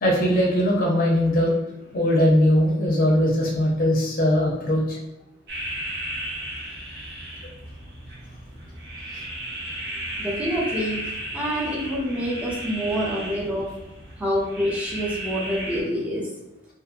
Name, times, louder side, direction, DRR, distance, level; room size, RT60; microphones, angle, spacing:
voice 1, 0.0-1.5 1.9-5.0 9.1-9.2, equal, 45° left, -3 dB, 0.6 m, -20 dB
sound 1, 5.5-15.8, right 1 dB, 60° right, 0.7 m, -34 dB
voice 2, 10.2-11.0 11.3-13.7 14.2-16.3, equal, 5° right, -5 dB, 0.6 m, -26 dB
2.6 x 2.5 x 2.5 m, 0.87 s
head